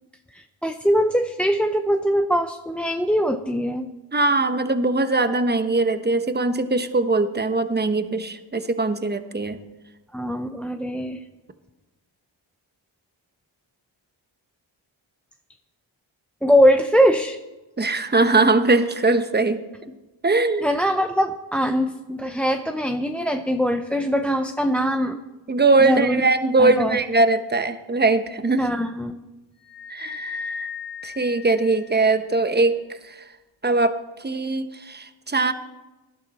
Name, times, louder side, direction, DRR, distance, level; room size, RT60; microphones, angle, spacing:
voice 1, 0.3-3.9 10.1-11.2 16.4-17.4 20.6-25.2 25.8-26.2 26.6-27.0 28.6-29.2, equal, ahead, 6 dB, 0.7 m, -22 dB
voice 2, 4.1-9.6 17.8-19.6 20.2-20.7 25.5-28.6 29.9-30.7 31.0-32.8 33.0-33.2 33.6-33.9 34.2-35.5, right 3 dB, 20° right, 9 dB, 1.1 m, -21 dB
sound 1, 29.6-32.3, left 6 dB, 35° left, 4.1 m, -36 dB
19.0 x 11.5 x 4.3 m, 1.1 s
cardioid pair, 70°, 49 cm